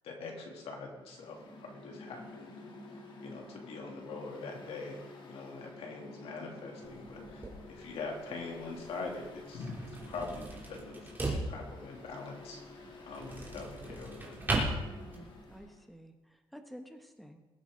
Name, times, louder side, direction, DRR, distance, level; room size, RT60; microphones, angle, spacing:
voice 1, 0.0-2.5 3.2-14.4, left 3 dB, 75° left, 0 dB, 3.0 m, -43 dB
Mechanical fan, 1.0-15.8, left 2 dB, 50° left, 2.1 m, -51 dB
sound 1, 6.8-15.6, right 2 dB, 20° right, 3.3 m, -39 dB
voice 2, 14.8-17.4, equal, ahead, 5 dB, 1.3 m, -51 dB
21.5 x 9.0 x 3.9 m, 1.1 s
cardioid pair, 140°, 10 cm